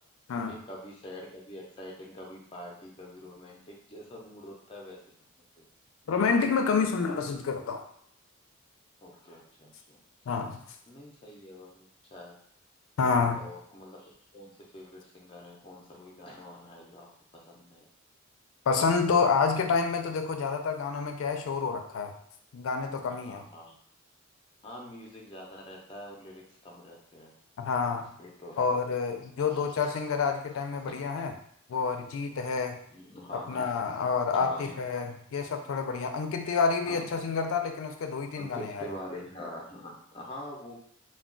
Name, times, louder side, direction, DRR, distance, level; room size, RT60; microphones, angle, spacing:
voice 1, 0.5-5.0 5.6-5.7 6.8-7.0 9.0-10.0 10.9-12.4 13.3-17.1 17.3-17.9 23.1-23.8 24.6-27.3 28.2-28.8 29.5-29.7 32.9-33.7 34.3-34.8 36.9-37.0 38.3-40.8, left 1 dB, 25° left, -1 dB, 0.5 m, -45 dB
voice 2, 6.1-7.8 10.3-10.6 13.0-13.5 18.7-22.1 22.5-23.4 27.6-28.1 28.6-31.3 31.7-32.8 33.5-38.9, left 5 dB, 85° left, 5 dB, 0.4 m, -28 dB
2.3 x 2.2 x 3.6 m, 0.65 s
head